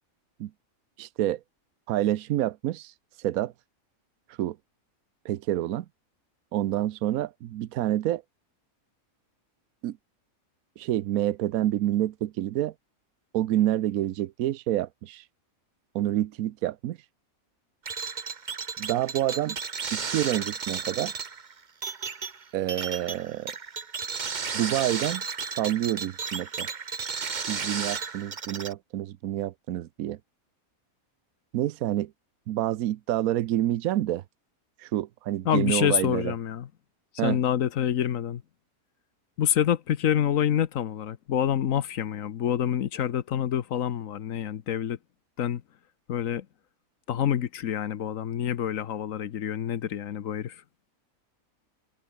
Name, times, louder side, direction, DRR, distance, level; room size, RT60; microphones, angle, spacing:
voice 1, 1.0-1.4 1.9-2.9 3.2-3.5 4.4-4.6 5.2-5.8 6.5-8.2 9.8-10.0 10.8-12.7 13.3-15.2 15.9-17.0 18.8-19.6 19.9-21.1 22.5-23.5 24.5-25.2 25.6-26.7 27.5-30.2 31.5-32.1 32.5-34.2 34.8-36.3 37.2-37.4, right 13 dB, 75° right, 1.1 m, -28 dB
sound 1, 17.9-28.7, right 5 dB, 35° right, 1.1 m, -34 dB
voice 2, 35.4-36.7 37.1-38.4 39.4-45.0 45.4-45.6 46.1-46.5 47.1-50.6, left 10 dB, 70° left, 1.3 m, -27 dB
omnidirectional pair, 1.5 m